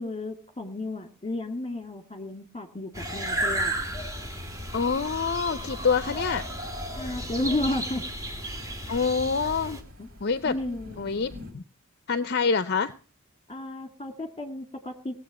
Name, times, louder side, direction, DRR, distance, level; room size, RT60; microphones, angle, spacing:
voice 1, 0.0-3.7 7.0-8.0 10.0-10.1 10.4-11.2 13.5-15.1, left 2 dB, 25° left, 7 dB, 2.1 m, -33 dB
sound 1, 2.9-9.8, right 1 dB, 15° right, 2.3 m, -33 dB
sound 2, 3.0-11.5, left 1 dB, 80° right, 6.2 m, -47 dB
voice 2, 4.7-6.4 8.9-9.8 10.2-10.6 11.0-11.6 12.1-12.9, left 5 dB, 50° left, 13 dB, 0.6 m, -26 dB
18.5 x 7.7 x 7.4 m, 0.38 s
head